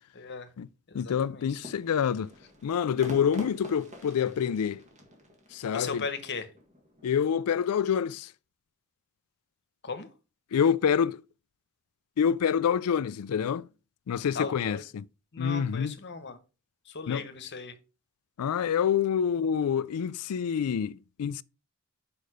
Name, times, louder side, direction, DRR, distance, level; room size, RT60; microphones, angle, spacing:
voice 1, 0.1-0.5 0.9-1.6 5.7-6.5 9.8-10.1 14.3-14.8 15.3-16.4 16.9-17.7, left 4 dB, 50° left, 1.1 m, -37 dB
voice 2, 0.9-2.3 2.6-4.8 5.5-6.0 7.0-8.3 10.5-11.2 12.2-13.6 14.1-15.1 15.4-16.0 17.1-17.2 18.4-21.4, left 7 dB, 80° left, 0.4 m, -27 dB
sound 1, 1.5-7.1, left 1 dB, 30° right, 1.8 m, -47 dB
6.6 x 5.2 x 4.9 m
head